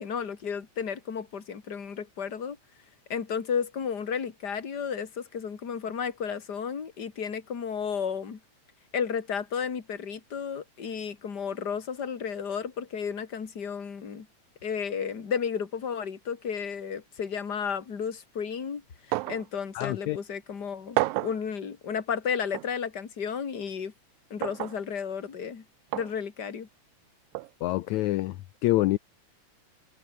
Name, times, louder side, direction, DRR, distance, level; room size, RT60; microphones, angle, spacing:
voice 1, 0.0-2.6 3.1-8.4 8.9-14.3 14.6-18.8 19.3-23.9 24.3-25.6 25.9-26.7, left 7 dB, 35° left, 2.6 m, -33 dB
sound 1, 19.1-19.5 19.8-19.9 21.0-21.4 22.5-22.7 24.4-24.8 25.9-26.1 27.3-27.5, right 19 dB, 85° right, 2.4 m, -29 dB
voice 2, 19.8-20.2 27.6-28.4 28.6-29.0, left 17 dB, 75° left, 1.8 m, -26 dB
omnidirectional pair, 3.9 m